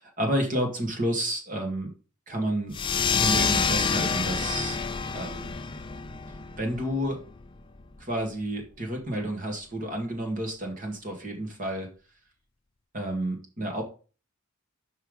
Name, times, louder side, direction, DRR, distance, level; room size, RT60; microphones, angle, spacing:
voice 1, 0.0-1.9 2.3-2.7 3.2-4.8 5.1-5.5 6.6-7.2 8.0-11.9 12.9-13.8, right 1 dB, 40° right, 2 dB, 1.9 m, -30 dB
sound 1, 2.7-7.8, left 5 dB, 25° left, 0.5 m, -28 dB
5.8 x 5.6 x 5.0 m, 0.35 s
head